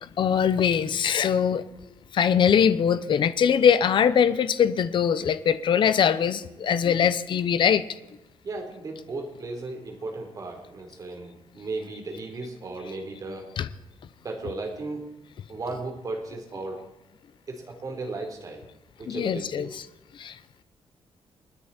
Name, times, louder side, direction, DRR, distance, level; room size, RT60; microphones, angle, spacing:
voice 1, 0.0-1.7 2.1-7.8 13.6-13.7 19.1-19.8 20.2-20.4, left 8 dB, 55° left, 13 dB, 0.8 m, -22 dB
voice 2, 8.4-13.5 14.2-15.1 15.5-16.8 17.5-18.6 19.0-19.8, right 3 dB, 40° right, 2 dB, 3.9 m, -35 dB
29.5 x 10.0 x 4.4 m, 0.97 s
wide cardioid pair, 165°, 10 cm